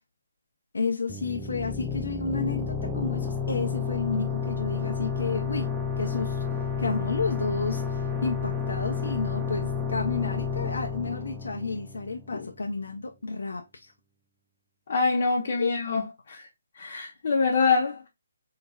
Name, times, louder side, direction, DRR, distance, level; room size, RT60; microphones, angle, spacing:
voice 1, 0.7-5.7 6.0-6.4 6.8-13.9 15.6-15.7, left 4 dB, 80° left, 1.0 m, -31 dB
sound 1, 1.1-12.5, left 6 dB, ahead, 0.6 m, -31 dB
voice 2, 14.9-16.0 16.3-16.5 16.7-18.1, left 4 dB, 50° left, 1.3 m, -25 dB
4.0 x 3.8 x 2.7 m
hypercardioid pair, 160°, 0 cm